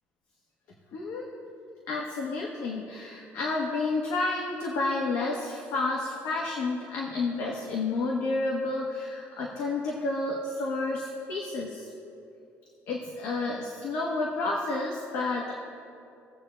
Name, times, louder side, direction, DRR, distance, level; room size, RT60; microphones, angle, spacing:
voice 1, 0.9-1.2 1.9-11.9 12.9-15.5, left 3 dB, 75° left, -2 dB, 1.2 m, -30 dB
19.0 x 7.9 x 2.2 m, 2.7 s
cardioid pair, 150°, 5 cm